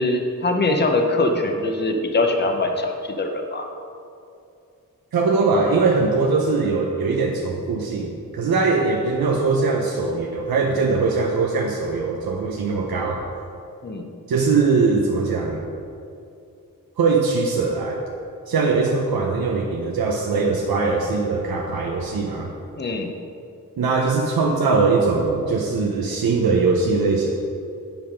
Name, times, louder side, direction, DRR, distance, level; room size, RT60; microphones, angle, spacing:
voice 1, 0.0-3.7 8.8-8.9 13.8-14.0 22.8-23.1, left 2 dB, 30° left, 4 dB, 0.7 m, -22 dB
voice 2, 5.1-13.2 14.3-15.6 17.0-18.0 18.5-22.5 23.8-27.3, right 4 dB, 85° right, -1 dB, 0.9 m, -21 dB
9.1 x 5.7 x 5.2 m, 2.5 s
wide cardioid pair, 170°, 35 cm